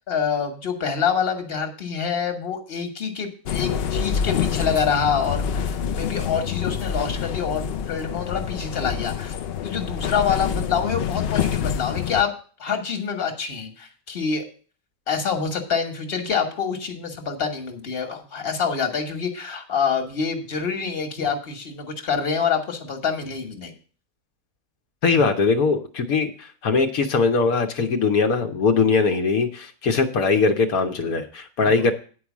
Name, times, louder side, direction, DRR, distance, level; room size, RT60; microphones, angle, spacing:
voice 1, 0.1-9.3 9.6-12.3 12.6-14.4 15.1-23.7 31.6-31.7, left 6 dB, 45° left, 5 dB, 1.5 m, -26 dB
sound 1, 3.5-12.2, left 8 dB, 65° left, 0.6 m, -27 dB
voice 2, 25.0-31.9, left 4 dB, 80° left, 4 dB, 1.4 m, -21 dB
9.6 x 4.8 x 7.2 m, 0.40 s
omnidirectional pair, 1.5 m